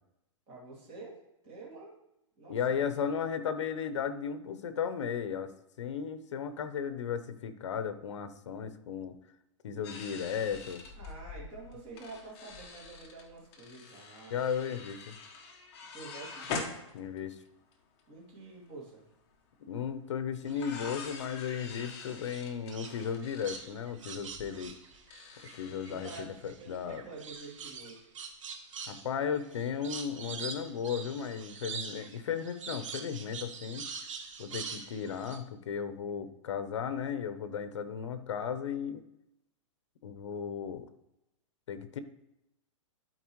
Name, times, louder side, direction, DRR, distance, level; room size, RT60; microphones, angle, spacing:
voice 1, 0.5-1.9 2.4-3.1 10.9-14.4 15.9-16.4 18.1-19.0 25.9-26.3 26.6-28.1, right 3 dB, 30° right, -5 dB, 2.9 m, -48 dB
voice 2, 2.5-5.5 5.8-9.2 9.6-10.8 14.3-15.1 16.9-17.4 19.6-24.7 25.5-27.0 28.9-33.9 34.4-39.0 40.0-40.9 41.7-42.0, left 7 dB, 65° left, 11 dB, 0.8 m, -35 dB
sound 1, 9.8-17.5 17.7-17.8 18.0-18.4 19.8-19.9 20.5-26.2, left 4 dB, 25° left, 0.9 m, -44 dB
sound 2, 20.5-21.8 22.3-25.6 25.9-35.4, right 5 dB, 75° right, 1.2 m, -44 dB
12.0 x 4.4 x 3.1 m, 0.87 s
hypercardioid pair, 170°, 16 cm